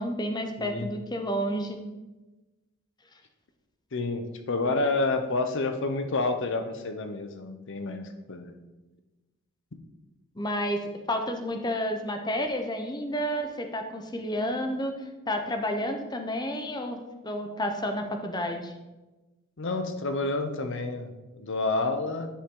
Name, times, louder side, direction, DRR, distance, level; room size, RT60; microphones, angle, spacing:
voice 1, 0.0-1.8 10.4-10.8 11.1-14.9 15.3-17.0 17.2-18.7, equal, 20° left, 5 dB, 0.8 m, -30 dB
voice 2, 0.6-0.9 3.9-8.6 19.6-21.1 21.4-22.3, left 3 dB, 60° left, 7 dB, 0.8 m, -29 dB
10.0 x 5.5 x 3.8 m, 1.1 s
head